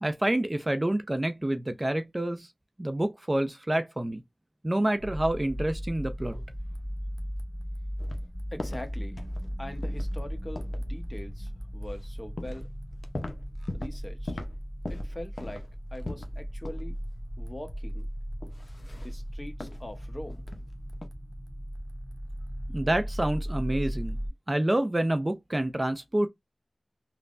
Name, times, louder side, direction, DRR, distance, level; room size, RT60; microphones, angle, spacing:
voice 1, 0.0-2.5 2.8-4.2 4.6-6.5 22.7-24.2 24.5-26.3, right 1 dB, 30° right, 0.4 m, -28 dB
sound 1, 5.0-24.3, equal, 5° right, 0.9 m, -36 dB
sound 2, 8.0-8.3 8.6-8.9 9.2-9.5 9.8-10.1 10.6-10.9 11.9-12.0 12.4-12.7 12.9-14.0 14.3-14.6 14.9-16.4 16.6-16.9 17.2-17.3 18.4-19.1 19.6-19.8 20.3-20.7 20.9-21.1, left 2 dB, 70° left, 0.5 m, -39 dB
voice 2, 8.5-9.2 9.6-12.7 13.7-14.4 14.9-17.0 17.4-18.1 18.9-20.4, left 1 dB, 30° left, 0.9 m, -42 dB
3.3 x 2.1 x 2.4 m
wide cardioid pair, 40°, 0 cm